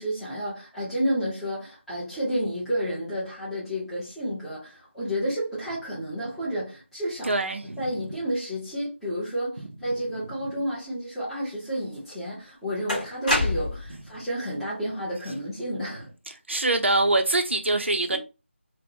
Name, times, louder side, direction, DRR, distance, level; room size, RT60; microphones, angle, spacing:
voice 1, 0.0-7.4 7.8-16.1 18.1-18.2, equal, ahead, 0.7 m, -31 dB
voice 2, 7.2-7.8 16.5-18.2, right 2 dB, 65° right, 0.5 m, -24 dB
sound 1, 11.9-12.0 12.9-14.0, left 1 dB, 40° left, 1.3 m, -26 dB
3.5 x 2.1 x 2.6 m
figure-of-eight pair, 165°, 7 cm